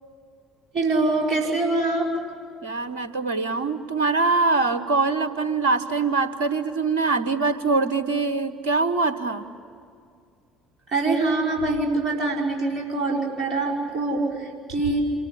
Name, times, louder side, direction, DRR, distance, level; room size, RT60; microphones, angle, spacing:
voice 1, 0.7-2.1 10.9-15.0, right 2 dB, 45° right, -1 dB, 5.4 m, -24 dB
voice 2, 2.6-9.4, right 3 dB, 75° right, 12 dB, 1.3 m, -23 dB
28.0 x 23.0 x 8.5 m, 2.3 s
figure-of-eight pair, 55°, 0 cm